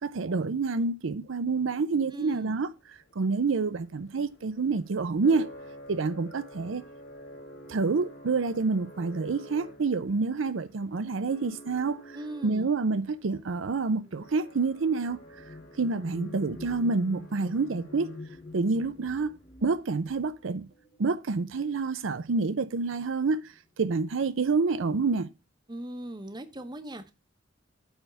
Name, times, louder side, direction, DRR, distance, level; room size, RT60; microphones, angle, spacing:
voice 1, 0.0-2.7 3.2-5.5 5.9-6.8 7.7-12.0 12.4-15.2 15.8-18.2 18.5-20.7 21.0-25.3, right 4 dB, 85° right, 0.6 m, -28 dB
voice 2, 2.1-2.6 12.1-12.7 25.7-27.1, right 1 dB, 20° right, 0.8 m, -39 dB
sound 1, 2.5-18.6, equal, 60° left, 3.4 m, -50 dB
sound 2, 13.4-21.6 22.5-22.7 23.0-23.6, left 2 dB, 25° left, 0.9 m, -47 dB
8.8 x 3.5 x 6.7 m
head